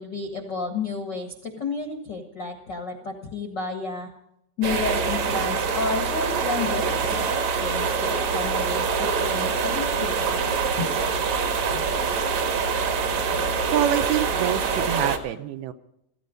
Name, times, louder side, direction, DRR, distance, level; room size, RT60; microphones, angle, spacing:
voice 1, 0.0-4.1 4.6-11.0, left 4 dB, 60° left, 4 dB, 1.1 m, -32 dB
sound 1, 4.6-15.2, right 5 dB, 55° right, 2.4 m, -25 dB
voice 2, 13.7-15.7, right 11 dB, 80° right, 10 dB, 2.5 m, -26 dB
16.5 x 15.0 x 5.2 m, 0.78 s
omnidirectional pair, 4.8 m